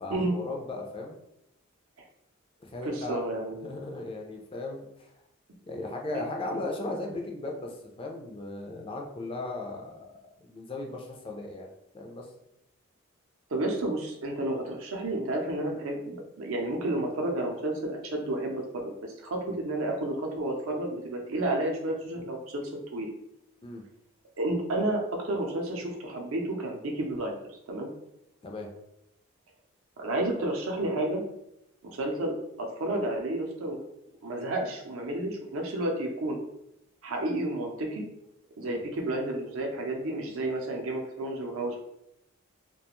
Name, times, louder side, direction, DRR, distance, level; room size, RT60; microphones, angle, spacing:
voice 1, 0.0-1.2 2.7-3.2 3.6-5.1 5.7-10.1 10.4-11.7 11.9-12.3 23.6-23.8 28.4-28.7 38.6-38.8, left 2 dB, 25° left, 1 dB, 0.3 m, -37 dB
voice 2, 2.8-3.7 6.1-6.3 6.5-6.6 13.5-22.6 22.9-23.1 24.4-27.4 27.7-27.9 30.0-31.2 31.8-33.8 34.2-36.4 37.0-38.0 38.6-41.8, right 1 dB, 75° right, 1 dB, 0.5 m, -31 dB
2.4 x 2.2 x 2.9 m, 0.82 s
head